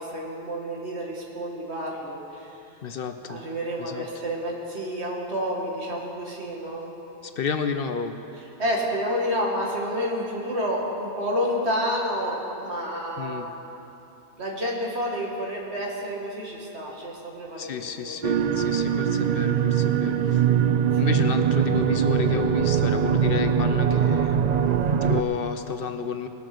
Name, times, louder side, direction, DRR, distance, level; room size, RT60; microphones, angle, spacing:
voice 1, 0.0-2.6 3.3-6.9 8.6-13.5 14.4-17.7 18.0-18.5 20.9-21.1 24.6-25.0, equal, 75° right, -2 dB, 2.2 m, -29 dB
voice 2, 2.8-3.4 3.8-4.1 7.2-8.2 13.2-13.5 17.6-20.5 21.0-24.7 25.0-26.3, left 6 dB, 60° left, 8 dB, 0.8 m, -31 dB
sound 1, 18.2-25.2, right 8 dB, 55° right, 0.5 m, -22 dB
19.5 x 7.3 x 6.0 m, 2.9 s
omnidirectional pair, 1.1 m